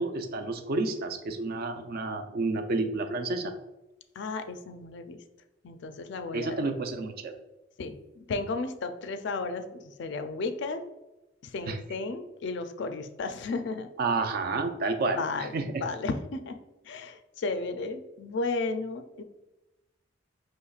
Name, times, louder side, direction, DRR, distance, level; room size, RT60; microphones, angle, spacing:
voice 1, 0.0-3.5 6.3-7.4 11.7-11.8 14.0-15.8, right 3 dB, 50° right, 6 dB, 0.5 m, -30 dB
voice 2, 4.2-5.2 5.6-6.6 7.8-10.8 11.4-13.9 15.1-16.6 16.8-19.2, left 3 dB, 65° left, 9 dB, 0.4 m, -34 dB
6.4 x 3.0 x 2.3 m, 1.0 s
head